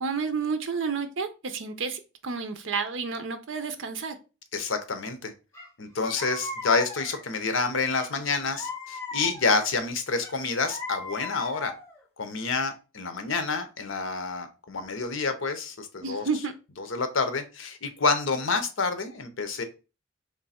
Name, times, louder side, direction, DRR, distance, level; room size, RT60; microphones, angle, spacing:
voice 1, 0.0-4.2 16.0-16.5, right 5 dB, 75° right, 8 dB, 0.6 m, -30 dB
voice 2, 4.5-5.3 5.8-11.7 12.2-16.2 16.8-19.6, left 4 dB, 80° left, 8 dB, 0.8 m, -28 dB
sound 1, 5.5-5.7 6.0-7.4 7.9-9.7 10.2-12.0, left 2 dB, 15° left, 1.2 m, -38 dB
3.7 x 3.3 x 4.2 m, 0.31 s
head